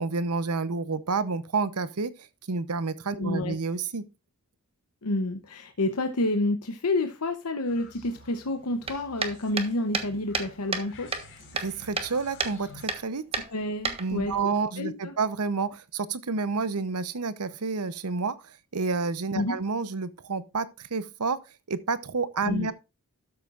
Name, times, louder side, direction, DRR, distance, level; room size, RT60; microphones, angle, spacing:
voice 1, 0.0-2.1 2.5-4.0 11.6-13.2 14.0-21.4 21.7-22.7, right 4 dB, 90° right, 0.9 m, -29 dB
voice 2, 3.2-3.6 5.0-11.1 13.4-14.5 14.8-15.1 19.3-19.6 22.4-22.7, left 2 dB, 80° left, 0.9 m, -29 dB
sound 1, 7.7-12.9, left 3 dB, 60° left, 4.9 m, -51 dB
sound 2, 8.8-10.9 11.1-12.1 12.4-12.6 12.9-13.0 13.3-14.4, right 4 dB, 25° right, 1.3 m, -31 dB
12.5 x 8.0 x 2.5 m
head